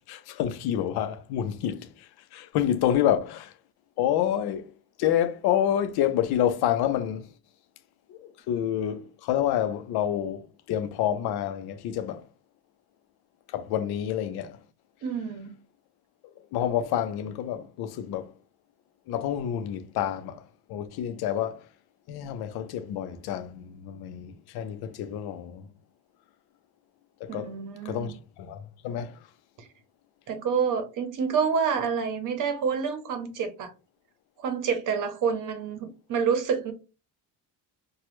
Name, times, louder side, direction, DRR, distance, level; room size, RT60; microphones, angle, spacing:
voice 1, 0.1-3.5 4.0-4.7 5.0-7.3 8.1-8.2 8.5-12.2 13.5-14.6 16.5-18.3 19.1-20.4 20.7-21.6 22.1-25.7 27.2-27.5 27.8-29.2, left 10 dB, 90° left, 0.6 m, -28 dB
voice 2, 15.0-15.5 27.3-28.1 30.3-33.7 34.4-36.7, right 6 dB, 55° right, 0.8 m, -28 dB
3.1 x 2.2 x 3.0 m
cardioid pair, 175°, 37 cm